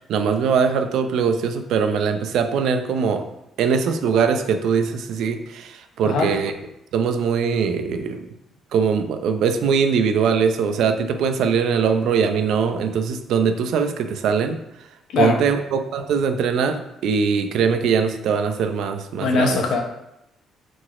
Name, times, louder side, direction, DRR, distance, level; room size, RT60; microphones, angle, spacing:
voice 1, 0.0-3.2 3.6-6.5 6.9-8.2 8.7-14.6 15.2-19.6, right 6 dB, 75° right, 6 dB, 0.7 m, -21 dB
voice 2, 6.0-6.4 15.1-15.4 19.2-19.8, left 4 dB, 75° left, 3 dB, 1.1 m, -21 dB
5.1 x 4.0 x 4.8 m, 0.85 s
supercardioid pair, 65°, 0 cm